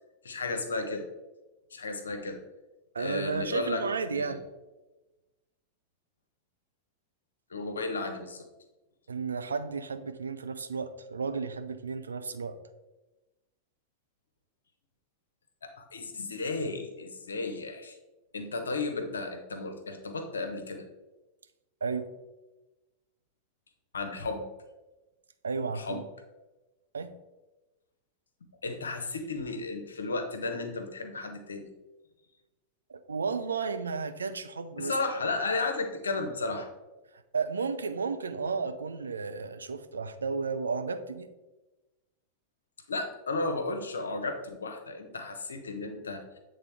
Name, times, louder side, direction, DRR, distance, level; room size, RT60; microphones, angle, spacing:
voice 1, 0.2-1.0 1.7-2.4 3.0-4.4 7.5-8.5 15.6-18.0 18.3-20.8 23.9-24.4 25.7-26.0 28.6-31.7 34.8-36.7 42.9-46.4, left 3 dB, 70° left, 6 dB, 0.8 m, -34 dB
voice 2, 2.9-4.4 9.1-12.6 21.8-22.1 25.4-26.0 26.9-27.1 32.9-34.9 37.3-41.3, right 5 dB, 75° right, 10 dB, 0.4 m, -33 dB
8.0 x 3.6 x 3.4 m, 1.1 s
figure-of-eight pair, 90°, 0 cm